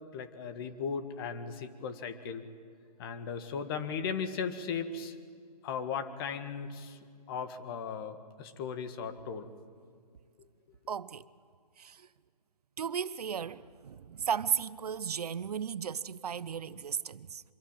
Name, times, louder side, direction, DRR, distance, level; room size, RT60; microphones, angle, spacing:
voice 1, 0.1-2.5 3.0-5.2 5.6-7.0 7.3-9.5, left 6 dB, 35° left, 1.8 m, -37 dB
voice 2, 10.9-11.2 11.8-12.1 12.8-17.4, right 7 dB, 65° right, 0.8 m, -35 dB
25.0 x 23.0 x 8.9 m
hypercardioid pair, 140°, 21 cm